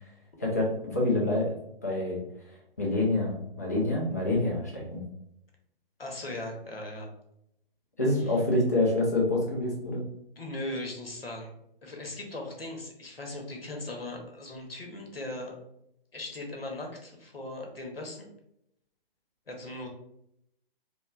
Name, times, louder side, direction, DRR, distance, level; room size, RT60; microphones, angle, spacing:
voice 1, 0.4-1.5 1.8-2.2 2.8-5.0 8.0-10.0, left 2 dB, 20° left, -4 dB, 0.3 m, -27 dB
voice 2, 6.0-7.1 8.3-8.4 10.4-11.5 11.8-15.6 16.1-18.3 19.5-19.9, left 1 dB, 80° left, 1 dB, 0.8 m, -38 dB
3.0 x 2.0 x 2.2 m, 0.77 s
figure-of-eight pair, 135°, 29 cm